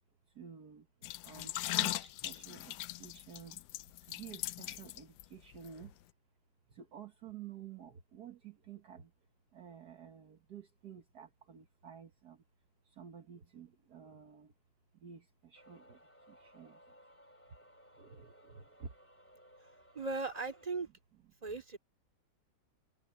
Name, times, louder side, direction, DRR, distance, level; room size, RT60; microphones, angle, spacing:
voice 1, 0.4-0.9 1.2-1.5 1.8-3.6 4.1-5.9 6.8-9.1 9.5-12.4 13.0-14.5 15.0-16.0 16.4-16.8 18.0-18.9, right 8 dB, 60° right, 1.8 m, -51 dB
sound 1, 1.0-5.2 5.5-5.7, left 15 dB, 75° left, 1.0 m, -39 dB
sound 2, 15.5-20.7, equal, 5° left, 3.2 m, -61 dB
voice 2, 19.9-20.9 21.4-21.8, right 3 dB, 20° right, 2.8 m, -37 dB
omnidirectional pair, 2.0 m